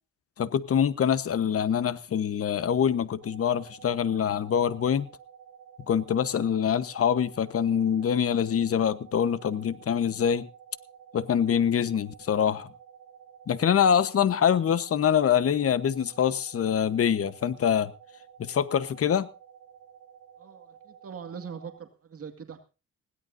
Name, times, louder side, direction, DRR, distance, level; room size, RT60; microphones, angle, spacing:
voice 1, 0.4-5.1 5.9-10.5 11.1-12.7 13.5-17.9 18.4-19.3, left 8 dB, 50° left, 1.1 m, -25 dB
sound 1, 3.2-21.8, right 8 dB, 75° right, 3.4 m, -52 dB
voice 2, 20.4-22.6, right 7 dB, 50° right, 2.1 m, -42 dB
21.0 x 16.5 x 2.7 m
cardioid pair, 90°, 30 cm